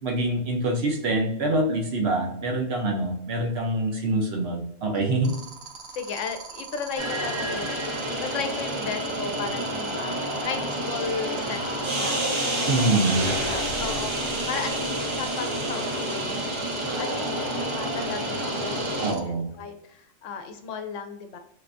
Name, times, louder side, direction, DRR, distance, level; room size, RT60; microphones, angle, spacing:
voice 1, 0.0-5.3 12.7-13.3 19.0-19.5, right 2 dB, 60° right, 2 dB, 1.0 m, -25 dB
sound 1, 5.2-19.2, right 7 dB, 85° right, 1.1 m, -42 dB
voice 2, 5.9-10.2 10.4-12.2 12.5-12.9 13.2-14.1 14.5-21.4, left 6 dB, 85° left, 6 dB, 1.0 m, -35 dB
sound 2, 7.0-19.1, right 1 dB, 30° right, 0.6 m, -29 dB
3.4 x 3.4 x 2.5 m, 0.80 s
omnidirectional pair, 1.3 m